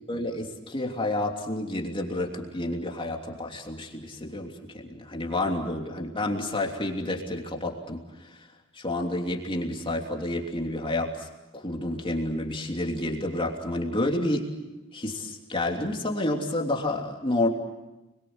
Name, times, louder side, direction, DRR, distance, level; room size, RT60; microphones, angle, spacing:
voice 1, 0.1-8.5 8.7-14.5 14.9-17.5, left 1 dB, 25° left, 1 dB, 3.1 m, -30 dB
30.0 x 22.5 x 8.0 m, 1.0 s
head